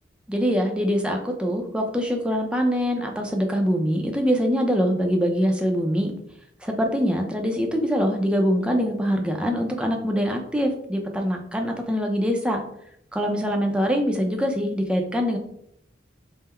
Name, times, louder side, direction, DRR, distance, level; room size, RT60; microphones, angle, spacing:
voice 1, 0.3-6.1 6.6-12.6 13.1-15.4, equal, 5° right, 2 dB, 0.5 m, -24 dB
3.7 x 2.0 x 4.2 m, 0.73 s
head